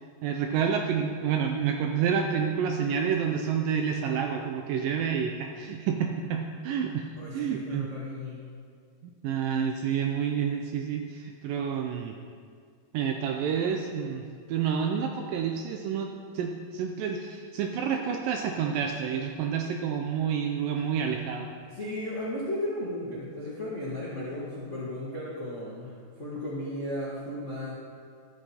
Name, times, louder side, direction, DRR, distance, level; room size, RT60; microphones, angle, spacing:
voice 1, 0.2-7.9 9.2-12.2 12.9-21.5, right 7 dB, 80° right, 3 dB, 2.0 m, -29 dB
voice 2, 7.2-8.4 21.7-27.7, left 1 dB, 80° left, -7 dB, 0.6 m, -35 dB
12.5 x 8.6 x 4.3 m, 2.1 s
omnidirectional pair, 4.5 m